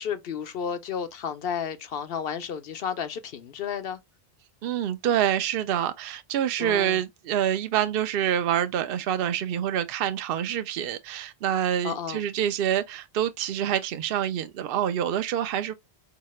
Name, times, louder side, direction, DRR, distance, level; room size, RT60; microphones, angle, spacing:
voice 1, 0.0-4.0 6.6-7.0 11.8-12.2, left 7 dB, 70° left, 0.9 m, -32 dB
voice 2, 4.6-15.7, right 10 dB, 65° right, 0.7 m, -26 dB
4.6 x 2.9 x 3.1 m
omnidirectional pair, 1.1 m